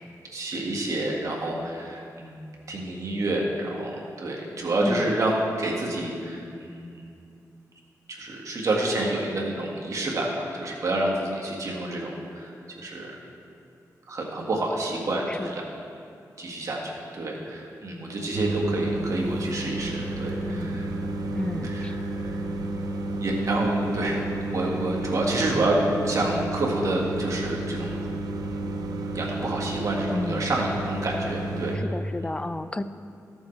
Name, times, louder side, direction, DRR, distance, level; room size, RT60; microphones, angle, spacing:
voice 1, 0.3-7.0 8.1-13.1 14.1-15.6 16.4-20.9 21.2-22.4 23.2-28.0 29.1-31.8, right 1 dB, 55° right, -2 dB, 1.8 m, -29 dB
voice 2, 4.8-5.2 15.3-15.6 20.5-20.8 21.3-22.0 30.1-30.6 31.7-32.8, left 2 dB, 15° left, 12 dB, 0.4 m, -32 dB
sound 1, 18.3-31.8, right 2 dB, 80° right, 0.7 m, -31 dB
14.0 x 7.2 x 3.3 m, 2.5 s
cardioid pair, 80°, 7 cm